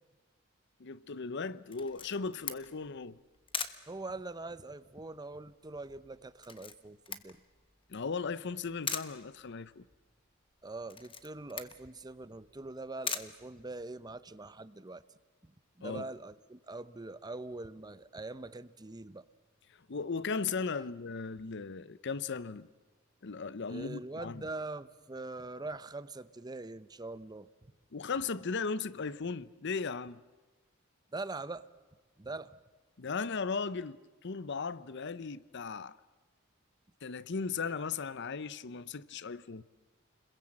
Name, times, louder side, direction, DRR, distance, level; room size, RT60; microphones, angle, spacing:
voice 1, 0.8-3.2 7.9-9.9 15.8-16.0 19.9-22.7 23.2-24.4 27.9-30.2 33.0-36.0 37.0-39.6, left 4 dB, 60° left, 0.7 m, -37 dB
Camera, 1.7-14.2, left 6 dB, 25° left, 1.2 m, -43 dB
voice 2, 3.9-7.4 10.6-15.0 15.8-19.3 23.7-27.5 31.1-31.7 32.2-32.6, right 2 dB, 20° right, 0.8 m, -43 dB
30.0 x 22.0 x 7.6 m
head